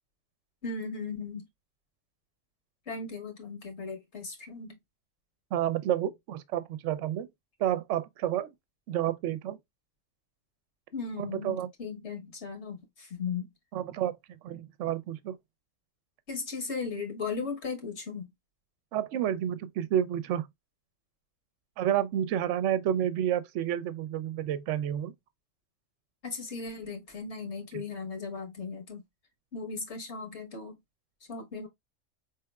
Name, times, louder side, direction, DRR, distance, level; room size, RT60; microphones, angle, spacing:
voice 1, 0.6-1.5 2.9-4.8 10.9-13.5 16.3-18.3 26.2-29.0 29.5-30.7 31.3-31.7, left 4 dB, 60° left, 1.4 m, -37 dB
voice 2, 5.5-7.3 7.6-8.5 8.9-9.6 11.2-11.7 13.7-14.1 14.4-15.4 18.9-20.5 21.8-25.1 27.7-27.8, right 11 dB, 75° right, 0.9 m, -30 dB
4.6 x 3.1 x 2.3 m
omnidirectional pair, 1.3 m